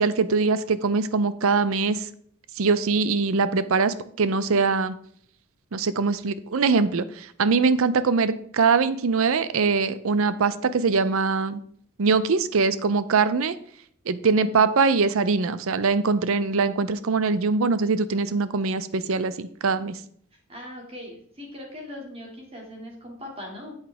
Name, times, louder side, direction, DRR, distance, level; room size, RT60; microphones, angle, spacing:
voice 1, 0.0-2.1 2.6-4.9 5.7-11.6 12.0-13.5 14.1-19.9, right 4 dB, 75° right, 14 dB, 0.5 m, -22 dB
voice 2, 20.5-23.8, left 1 dB, 25° right, -1 dB, 2.3 m, -40 dB
8.5 x 8.0 x 3.5 m, 0.62 s
head